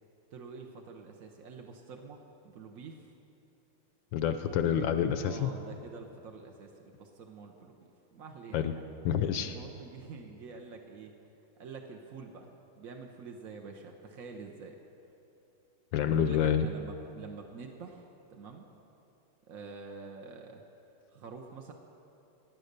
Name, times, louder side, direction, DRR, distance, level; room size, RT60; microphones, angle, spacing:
voice 1, 0.3-2.2 2.4-3.0 4.4-4.9 5.2-8.8 9.4-11.1 11.6-12.5 12.8-14.8 16.0-18.6 19.5-20.6 21.1-21.7, right 4 dB, 65° right, 2 dB, 0.8 m, -47 dB
voice 2, 4.1-5.5 8.5-8.7 9.0-9.6 15.9-16.7, left 9 dB, 75° left, 9 dB, 1.2 m, -28 dB
15.0 x 9.5 x 6.6 m, 2.9 s
omnidirectional pair, 2.4 m